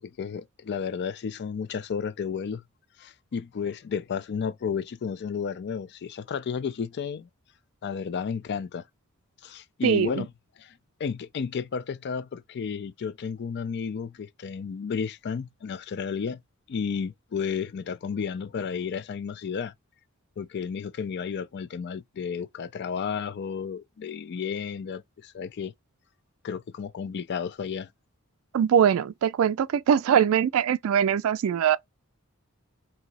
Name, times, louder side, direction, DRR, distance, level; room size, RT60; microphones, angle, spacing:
voice 1, 0.0-2.6 3.0-7.3 7.8-8.8 9.4-10.3 10.6-10.7 11.0-16.4 16.7-19.7 20.4-25.7 26.4-27.9, left 6 dB, 50° left, 0.4 m, -32 dB
voice 2, 9.8-10.3 28.5-31.8, right 8 dB, 70° right, 0.3 m, -22 dB
2.9 x 2.7 x 4.0 m
head